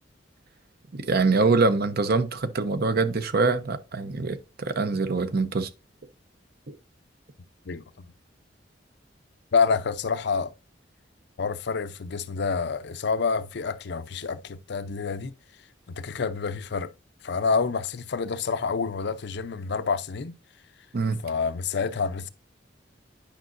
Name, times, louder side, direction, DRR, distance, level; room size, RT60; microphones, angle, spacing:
voice 1, 0.9-5.7 20.9-21.2, right 3 dB, 55° right, 0.8 m, -24 dB
voice 2, 7.7-8.1 9.5-10.5 11.4-15.3 15.9-16.9 17.2-20.3 21.2-22.3, left 5 dB, 65° left, 0.6 m, -28 dB
10.5 x 5.3 x 2.5 m
head